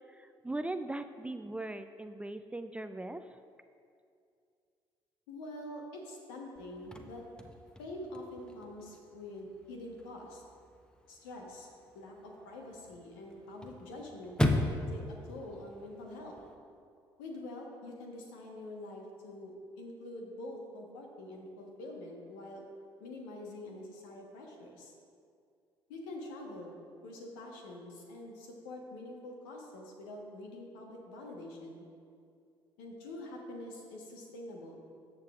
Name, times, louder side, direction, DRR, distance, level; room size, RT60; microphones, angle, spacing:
voice 1, 0.1-3.2, right 2 dB, 10° right, 9 dB, 0.4 m, -39 dB
voice 2, 5.3-7.2 7.8-10.4 11.1-11.7 11.9-16.4 17.2-22.6 23.0-24.9 25.9-31.9 32.8-34.8, left 1 dB, 75° left, 1 dB, 1.2 m, -45 dB
Chirp tweet / Car / Slam, 6.6-16.5, left 1 dB, 5° left, 0.9 m, -38 dB
13.5 x 7.3 x 2.5 m, 2.4 s
figure-of-eight pair, 50°, 12 cm